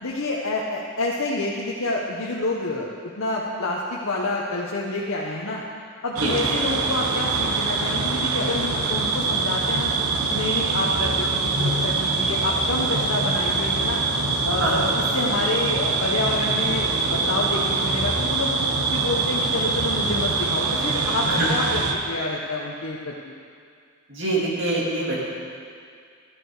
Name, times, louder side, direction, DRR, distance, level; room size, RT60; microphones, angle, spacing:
voice 1, 0.0-2.9 3.2-5.6 6.0-9.9 10.3-14.0 14.4-14.8 15.1-18.6 18.9-23.3, left 2 dB, 70° left, -3 dB, 0.9 m, -28 dB
sound 1, 6.2-21.9, right 3 dB, 85° right, 0.9 m, -24 dB
voice 2, 14.6-14.9 21.2-21.6 24.1-25.2, right 2 dB, 55° right, -5 dB, 2.4 m, -24 dB
12.5 x 9.4 x 4.7 m, 2.2 s
head